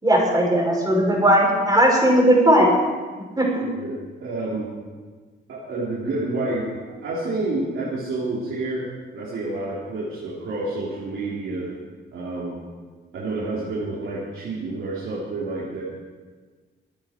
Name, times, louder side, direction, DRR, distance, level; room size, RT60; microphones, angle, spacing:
voice 1, 0.0-2.7 3.4-3.6, right 1 dB, 20° right, -1 dB, 5.4 m, -17 dB
voice 2, 3.6-4.7 5.5-11.7 12.1-12.6 13.1-15.8, right 2 dB, 75° right, -7 dB, 3.6 m, -29 dB
25.5 x 9.6 x 4.5 m, 1.4 s
cardioid pair, 90°, 20 cm